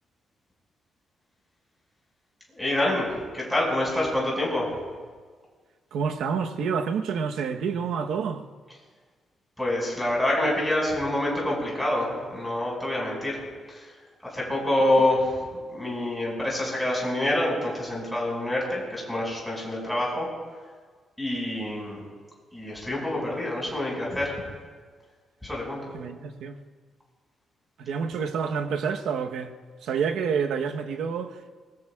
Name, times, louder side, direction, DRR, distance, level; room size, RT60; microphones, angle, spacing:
voice 1, 2.5-4.7 9.6-13.4 13.7-13.9 14.3-15.4 15.7-20.3 21.2-22.0 22.5-24.4 25.4-25.8, left 1 dB, 5° left, 5.8 m, -26 dB
voice 2, 5.9-8.4 14.8-15.1 25.9-26.6 27.8-31.5, right 6 dB, 75° right, 1.1 m, -29 dB
25.5 x 21.5 x 2.4 m
cardioid pair, 160°, 0 cm